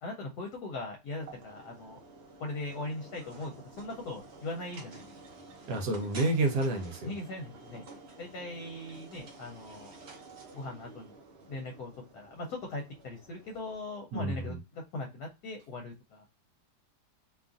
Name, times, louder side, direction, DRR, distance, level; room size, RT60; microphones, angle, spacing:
voice 1, 0.0-2.0 2.4-5.1 7.0-7.8 8.2-9.9 10.5-11.1 11.5-14.6 14.9-16.2, left 2 dB, 70° left, 2 dB, 1.1 m, -40 dB
sound 1, 1.2-13.8, right 3 dB, 55° right, 0.8 m, -51 dB
voice 2, 5.7-7.1 14.1-14.6, right 2 dB, 75° right, 4 dB, 1.1 m, -29 dB
2.8 x 2.4 x 2.4 m, 0.26 s
omnidirectional pair, 1.8 m